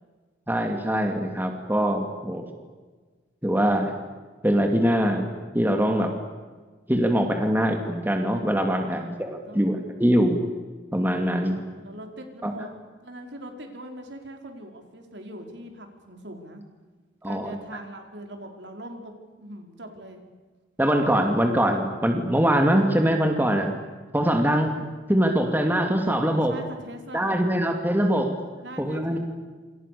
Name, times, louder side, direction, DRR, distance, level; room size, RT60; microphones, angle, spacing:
voice 1, 0.5-2.5 3.4-3.9 4.4-6.1 6.9-10.4 10.9-11.6 12.4-12.5 17.2-17.5 20.8-23.7 24.1-24.7 25.1-26.5 27.1-28.4 28.8-29.2, equal, 10° right, 4 dB, 2.5 m, -23 dB
voice 2, 8.8-9.7 11.7-12.7 13.0-16.6 17.2-19.1 19.4-20.2 26.1-27.4 28.6-29.2, right 1 dB, 65° right, 4 dB, 5.1 m, -41 dB
28.0 x 27.5 x 6.9 m, 1.4 s
head